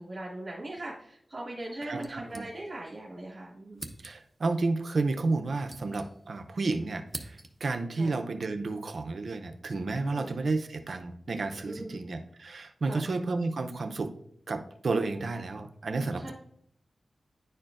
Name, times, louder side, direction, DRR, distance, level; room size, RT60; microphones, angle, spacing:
voice 1, 0.0-3.8 7.9-8.2 10.0-10.4 11.6-12.0 12.8-13.1 16.2-16.3, right 1 dB, 45° right, -6 dB, 1.6 m, -40 dB
voice 2, 1.9-2.4 4.0-14.1 14.5-16.3, right 3 dB, 65° right, 7 dB, 0.6 m, -31 dB
sound 1, 2.0-3.0 3.2-3.3 3.7-4.4 5.3-6.5 6.8-7.8, right 2 dB, 25° right, 0.7 m, -45 dB
10.5 x 4.4 x 2.5 m, 0.67 s
wide cardioid pair, 80°, 0 cm